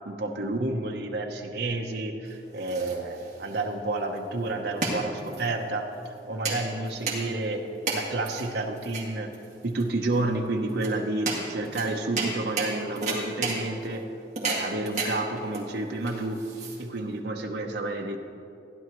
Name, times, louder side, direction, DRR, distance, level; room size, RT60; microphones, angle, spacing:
voice 1, 0.1-5.9 6.3-7.6 7.9-9.3 9.6-14.0 14.4-16.4 16.8-18.2, right 2 dB, 70° right, 2 dB, 0.8 m, -30 dB
sound 1, 2.2-17.2, right 3 dB, 40° right, 2.0 m, -34 dB
15.5 x 10.5 x 3.0 m, 2.6 s
head